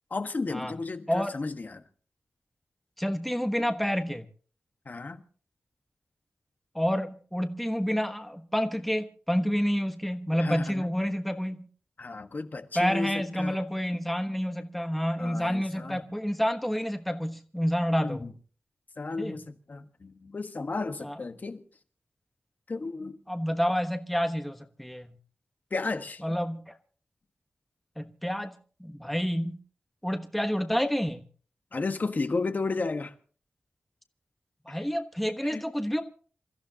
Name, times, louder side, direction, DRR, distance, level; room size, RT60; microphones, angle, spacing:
voice 1, 0.1-1.8 4.8-5.2 10.4-10.9 12.0-13.6 15.2-16.0 18.0-18.3 19.0-21.6 22.7-23.1 25.7-26.2 31.7-33.1 34.7-34.8 35.4-35.6, left 3 dB, 45° left, 1.4 m, -33 dB
voice 2, 3.0-4.3 6.7-11.7 12.7-18.3 19.2-19.4 21.0-21.2 23.3-25.1 26.2-26.7 28.0-29.6 30.0-31.2 34.7-36.0, equal, 5° left, 1.2 m, -29 dB
27.5 x 14.5 x 2.9 m
wide cardioid pair, 100°, 4 cm